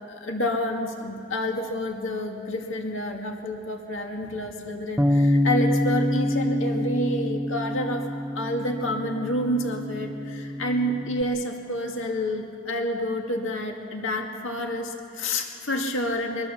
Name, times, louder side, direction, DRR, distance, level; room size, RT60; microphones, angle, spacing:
voice 1, 0.1-8.0 8.3-16.5, left 1 dB, 65° left, 2 dB, 2.2 m, -29 dB
Bass guitar, 5.0-11.2, left 1 dB, 10° right, 0.6 m, -26 dB
23.0 x 23.0 x 7.1 m, 2.5 s
head